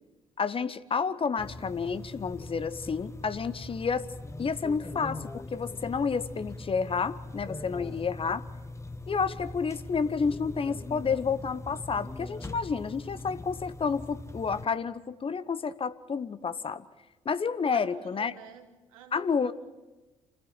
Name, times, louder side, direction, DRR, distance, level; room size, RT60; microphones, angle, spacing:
voice 1, 0.4-4.1 4.4-8.4 9.1-16.8 17.2-18.3 19.1-19.5, left 5 dB, 30° left, 15 dB, 1.0 m, -30 dB
sound 1, 1.4-14.7, left 2 dB, 15° left, 1.3 m, -41 dB
voice 2, 17.7-19.5, right 9 dB, 75° right, 4 dB, 2.1 m, -49 dB
28.5 x 15.5 x 7.6 m, 1.2 s
figure-of-eight pair, 45°, 17 cm